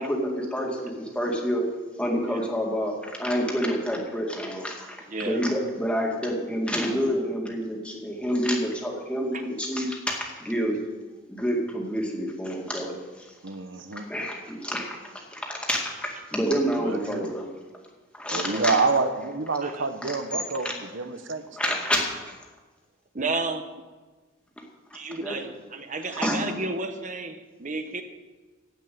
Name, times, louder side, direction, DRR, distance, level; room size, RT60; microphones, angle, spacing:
voice 1, 0.0-1.6 2.0-2.9 3.2-4.8 5.2-10.8 11.3-12.9 14.1-15.0 15.3-17.5 18.2-18.7 20.0-20.2 20.6-20.7 21.6-22.1 25.2-25.4 26.1-26.5, equal, 5° left, -1 dB, 2.1 m, -28 dB
voice 2, 5.1-5.5 18.3-18.7 19.6-19.9 23.1-23.7 24.9-28.0, right 3 dB, 40° right, 7 dB, 1.0 m, -32 dB
voice 3, 13.4-14.0 16.8-17.3 18.3-21.8, right 4 dB, 65° right, 8 dB, 1.1 m, -28 dB
16.0 x 5.5 x 9.2 m, 1.3 s
head